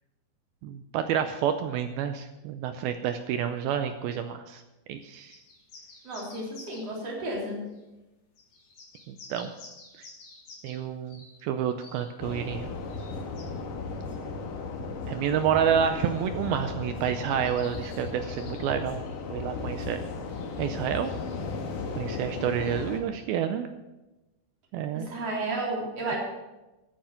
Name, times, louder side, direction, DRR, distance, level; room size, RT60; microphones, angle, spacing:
voice 1, 0.6-4.6 4.9-5.4 9.1-9.5 9.9-10.1 10.6-12.7 15.1-19.0 19.3-20.0 20.6-21.1 22.0-23.7 24.7-25.1, right 8 dB, 80° right, 8 dB, 2.2 m, -29 dB
sound 1, 5.3-6.9 7.8-7.9 8.4-10.8 11.1-11.3 11.8-12.0 12.9-13.4, left 3 dB, 80° left, 6.4 m, -49 dB
voice 2, 6.0-7.7 24.9-26.2, right 2 dB, 40° right, -3 dB, 4.3 m, -32 dB
sound 2, 12.2-23.0, left 4 dB, 60° left, 2.6 m, -35 dB
14.5 x 9.1 x 5.8 m, 1.0 s
omnidirectional pair, 5.0 m